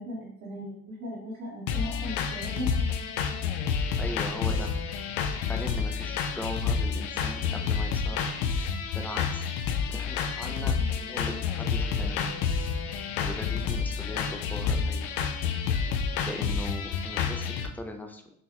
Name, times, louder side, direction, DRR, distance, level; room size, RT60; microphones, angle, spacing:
voice 1, 0.0-2.7, equal, 60° right, -7 dB, 1.3 m, -37 dB
sound 1, 1.7-17.7, left 6 dB, 90° left, 0.5 m, -29 dB
voice 2, 4.0-4.7 5.5-8.2 8.9-12.4 13.2-15.3 16.2-18.2, left 1 dB, 5° left, 4 dB, 0.4 m, -39 dB
5.6 x 2.1 x 2.9 m, 0.68 s
cardioid pair, 120°, 29 cm